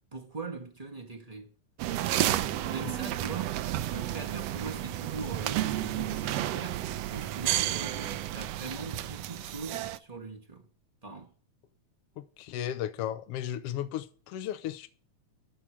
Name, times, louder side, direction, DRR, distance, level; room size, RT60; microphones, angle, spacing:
voice 1, 0.1-1.5 2.2-3.6 3.9-10.7 11.0-11.3, right 3 dB, 30° right, 0.7 m, -41 dB
sound 1, 1.8-10.0, right 13 dB, 80° right, 1.5 m, -32 dB
voice 2, 12.2-14.9, left 11 dB, 75° left, 1.4 m, -35 dB
13.5 x 4.8 x 8.7 m
omnidirectional pair, 3.5 m